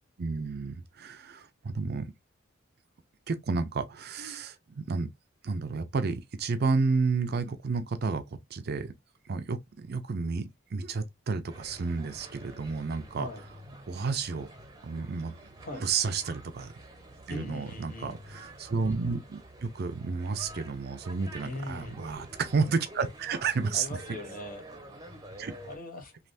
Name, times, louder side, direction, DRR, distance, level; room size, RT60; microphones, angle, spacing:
voice 1, 0.2-2.1 3.3-5.1 5.4-8.2 8.5-8.9 9.3-13.3 13.9-14.5 14.8-15.5 15.7-16.7 17.3-24.0 25.4-25.5, right 4 dB, 55° right, 0.5 m, -31 dB
sound 1, 11.5-25.8, right 1 dB, 20° right, 0.8 m, -49 dB
voice 2, 17.3-18.2 21.4-22.0 23.7-24.6 25.7-26.2, left 1 dB, 45° left, 0.8 m, -40 dB
3.3 x 2.5 x 2.5 m
head